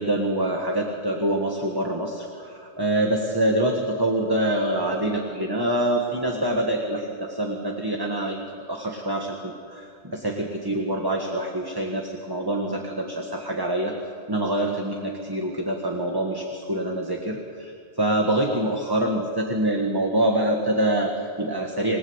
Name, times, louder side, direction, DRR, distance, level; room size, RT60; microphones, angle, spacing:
voice 1, 0.0-8.4 8.7-14.0 14.3-22.0, right 1 dB, 20° right, 1 dB, 1.8 m, -25 dB
28.0 x 19.0 x 8.2 m, 2.5 s
omnidirectional pair, 1.1 m